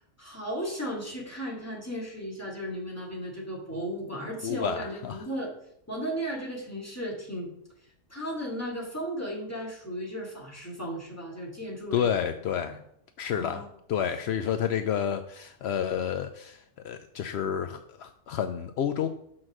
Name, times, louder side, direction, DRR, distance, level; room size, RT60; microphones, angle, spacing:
voice 1, 0.0-5.5 5.9-7.5 8.1-12.1 12.7-12.8 13.3-13.7, equal, 10° left, -3 dB, 2.3 m, -35 dB
voice 2, 4.4-5.3 11.9-12.8 13.2-19.1, left 8 dB, 70° left, 8 dB, 0.6 m, -30 dB
6.2 x 5.8 x 6.3 m, 0.72 s
omnidirectional pair, 1.6 m